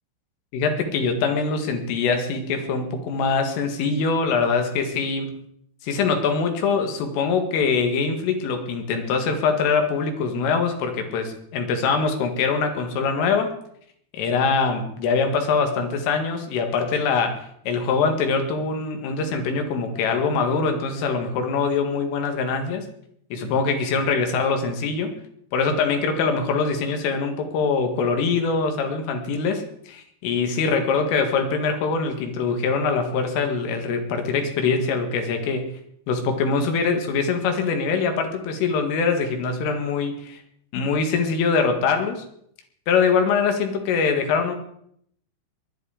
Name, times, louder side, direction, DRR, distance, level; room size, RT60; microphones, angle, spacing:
voice 1, 0.5-5.4 5.8-13.5 14.1-22.9 23.3-25.1 25.5-35.7 36.1-40.4 40.7-42.2 42.9-44.5, left 5 dB, 85° left, 5 dB, 4.4 m, -23 dB
19.5 x 12.0 x 5.0 m, 0.68 s
omnidirectional pair, 5.6 m